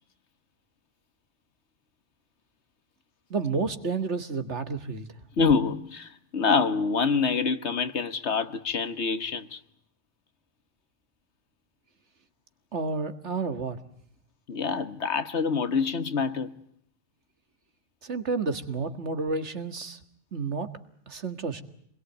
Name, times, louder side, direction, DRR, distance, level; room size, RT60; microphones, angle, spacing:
voice 1, 3.3-5.1 12.7-13.8 18.0-20.0 20.3-20.7 21.1-21.6, right 4 dB, 75° right, 2.1 m, -30 dB
voice 2, 5.4-9.6 14.5-16.5, left 5 dB, 70° left, 1.6 m, -26 dB
28.0 x 21.5 x 9.2 m
omnidirectional pair, 1.2 m